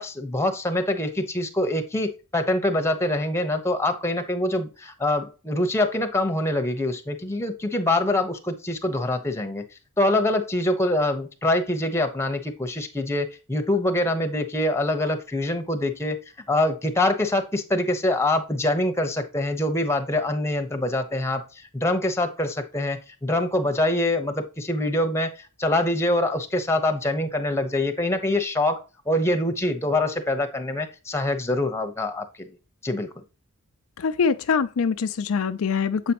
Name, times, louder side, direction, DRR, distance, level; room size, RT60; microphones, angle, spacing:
voice 1, 0.0-9.6 10.0-16.2 16.5-32.6 32.8-33.2, left 1 dB, 10° left, 1.0 m, -25 dB
voice 2, 34.0-36.1, left 5 dB, 70° left, 0.4 m, -24 dB
7.8 x 5.1 x 2.9 m
head